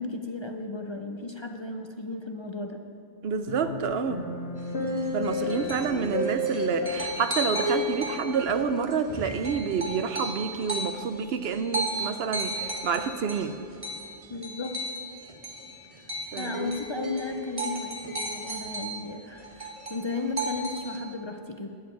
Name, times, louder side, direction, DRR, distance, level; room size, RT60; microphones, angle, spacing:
voice 1, 0.0-2.8 14.3-14.8 16.0-16.1 16.4-21.8, left 3 dB, 35° left, 4 dB, 0.5 m, -35 dB
voice 2, 3.2-4.3 5.1-13.6 16.3-16.7, right 6 dB, 75° right, 10 dB, 0.9 m, -28 dB
sound 1, 3.5-8.9 9.2-9.4, left 2 dB, 75° left, 1.7 m, -33 dB
sound 2, 4.6-19.1 19.3-21.0, right 1 dB, 35° right, 1.2 m, -34 dB
14.0 x 4.9 x 9.2 m, 2.4 s
omnidirectional pair, 1.0 m